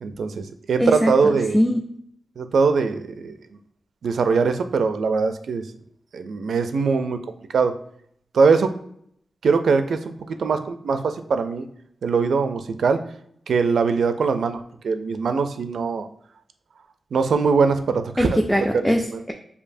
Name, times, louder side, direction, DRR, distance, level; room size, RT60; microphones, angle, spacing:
voice 1, 0.0-1.6 2.4-3.4 4.0-5.6 6.1-7.2 7.5-7.7 8.3-8.7 9.4-11.7 12.0-13.0 13.5-14.6 14.8-16.1 17.1-18.4 19.1-19.2, right 5 dB, 75° right, 9 dB, 0.4 m, -21 dB
voice 2, 0.8-1.8 18.2-19.3, equal, ahead, 2 dB, 0.3 m, -22 dB
6.6 x 2.7 x 2.6 m, 0.69 s
wide cardioid pair, 165°, 0 cm